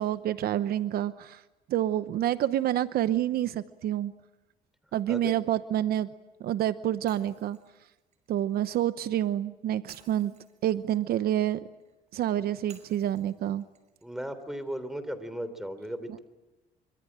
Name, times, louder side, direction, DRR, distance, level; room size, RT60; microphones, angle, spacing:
voice 1, 0.0-1.4 1.7-4.1 4.9-6.1 6.4-7.6 8.3-10.3 10.6-11.6 12.1-13.6, right 12 dB, 65° right, 13 dB, 0.9 m, -28 dB
Shatter, 7.1-9.1 9.9-12.0 12.7-14.8, right 6 dB, 45° right, 5.6 m, -59 dB
voice 2, 14.0-16.2, equal, ahead, 11 dB, 3.5 m, -36 dB
25.5 x 25.0 x 8.9 m, 1.1 s
cardioid pair, 110°, 17 cm